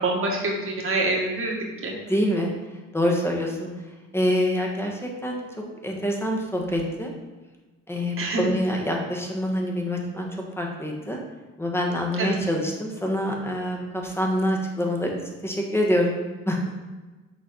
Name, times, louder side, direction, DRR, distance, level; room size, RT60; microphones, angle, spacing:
voice 1, 0.0-1.5 1.8-1.9 8.2-8.4 12.2-12.4, right 2 dB, 45° right, -1 dB, 1.6 m, -25 dB
voice 2, 2.1-2.5 2.9-3.7 4.1-5.5 5.8-7.1 7.9-10.3 10.6-11.2 11.6-16.6, equal, 10° left, 1 dB, 1.2 m, -26 dB
6.3 x 4.1 x 4.1 m, 1.2 s
cardioid pair, 90°, 30 cm